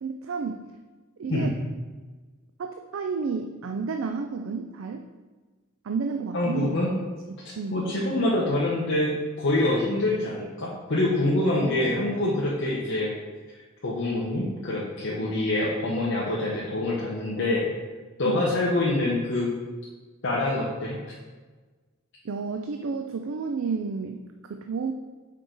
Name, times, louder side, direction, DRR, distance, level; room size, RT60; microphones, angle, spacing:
voice 1, 0.0-0.7 1.2-1.6 2.6-5.1 5.8-6.8 7.3-7.9 11.6-11.8 18.2-18.5 22.2-24.9, right 5 dB, 70° right, 5 dB, 0.4 m, -31 dB
voice 2, 6.3-6.9 7.7-13.1 13.8-17.7 18.2-19.5 20.2-21.0, left 1 dB, 60° left, -5 dB, 1.0 m, -25 dB
6.0 x 4.6 x 3.9 m, 1.3 s
head